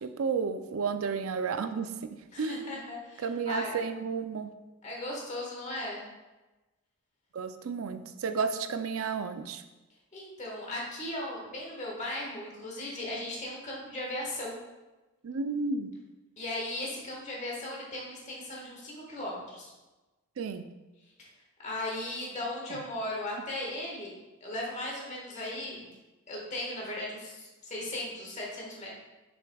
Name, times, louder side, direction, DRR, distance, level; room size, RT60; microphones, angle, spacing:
voice 1, 0.0-2.8 3.2-4.5 7.3-9.6 15.2-15.9 20.4-20.6, right 5 dB, 75° right, 9 dB, 0.4 m, -32 dB
voice 2, 2.3-3.9 4.8-6.0 10.1-14.6 16.4-19.7 21.2-21.3 21.6-24.1 24.4-25.9 26.3-28.9, left 1 dB, 35° left, -3 dB, 1.5 m, -37 dB
6.8 x 6.1 x 2.3 m, 1.1 s
head